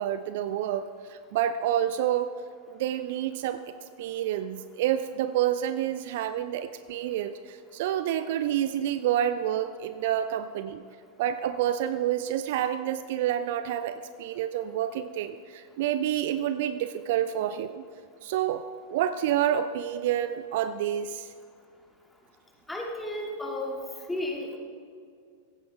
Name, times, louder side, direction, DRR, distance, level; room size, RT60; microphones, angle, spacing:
voice 1, 0.0-2.3 2.7-3.6 4.0-10.8 11.2-17.8 18.2-18.6 18.9-21.3, right 11 dB, 50° right, 11 dB, 0.5 m, -28 dB
voice 2, 22.7-23.8 24.1-24.6, left 1 dB, 5° left, -1 dB, 2.6 m, -33 dB
16.5 x 15.0 x 3.6 m, 2.2 s
figure-of-eight pair, 90°, 0 cm